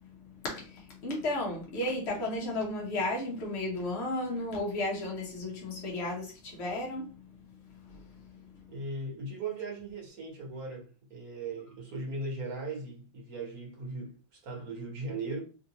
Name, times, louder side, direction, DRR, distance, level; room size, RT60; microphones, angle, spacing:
voice 1, 0.2-7.3 7.8-8.4, left 1 dB, 60° left, 0.6 m, -34 dB
voice 2, 8.7-15.4, right 2 dB, 50° right, 1.5 m, -38 dB
3.5 x 2.5 x 2.8 m
omnidirectional pair, 2.3 m